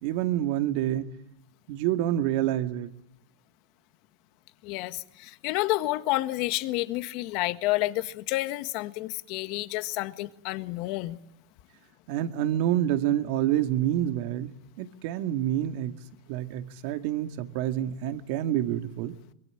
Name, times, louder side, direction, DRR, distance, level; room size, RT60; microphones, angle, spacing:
voice 1, 0.0-1.1 1.7-2.9 12.1-14.5 14.8-16.0 16.3-19.2, right 12 dB, 60° right, 2.1 m, -27 dB
voice 2, 4.6-11.2, left 18 dB, 55° left, 1.5 m, -30 dB
24.5 x 22.5 x 10.0 m
supercardioid pair, 120°, 0 cm